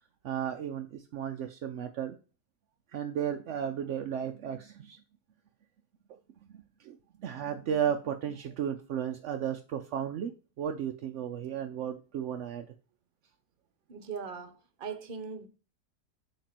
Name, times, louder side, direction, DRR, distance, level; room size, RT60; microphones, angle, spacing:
voice 1, 0.2-2.2 2.9-5.0 6.8-10.3 10.6-12.7, right 9 dB, 70° right, 0.7 m, -34 dB
voice 2, 13.9-15.5, right 6 dB, 40° right, 0.9 m, -40 dB
8.5 x 3.0 x 5.9 m
omnidirectional pair, 1.7 m